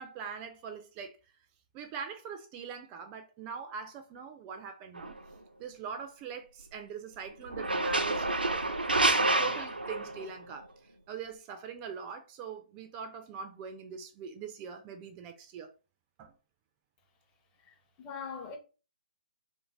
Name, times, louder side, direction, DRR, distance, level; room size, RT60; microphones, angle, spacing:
voice 1, 0.0-1.3 1.7-5.2 5.6-10.7 11.1-15.7 16.2-16.3, right 6 dB, 25° right, 0.4 m, -43 dB
sound 1, 4.9-5.2 7.5-10.3, right 2 dB, 90° right, 0.6 m, -28 dB
voice 2, 17.6-18.6, left 5 dB, 20° left, 0.7 m, -42 dB
3.2 x 2.6 x 3.2 m
figure-of-eight pair, 135°, 5 cm